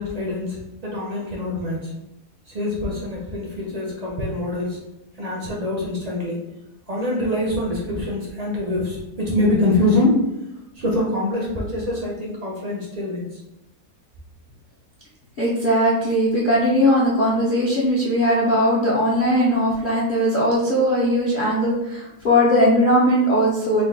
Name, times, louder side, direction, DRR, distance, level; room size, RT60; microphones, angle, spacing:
voice 1, 0.0-1.9 2.5-4.8 5.2-6.4 6.9-10.1 10.8-13.3, left 1 dB, 55° right, -3 dB, 0.4 m, -24 dB
voice 2, 15.4-23.8, equal, 55° left, -7 dB, 0.6 m, -19 dB
3.8 x 2.2 x 3.6 m, 0.91 s
omnidirectional pair, 1.7 m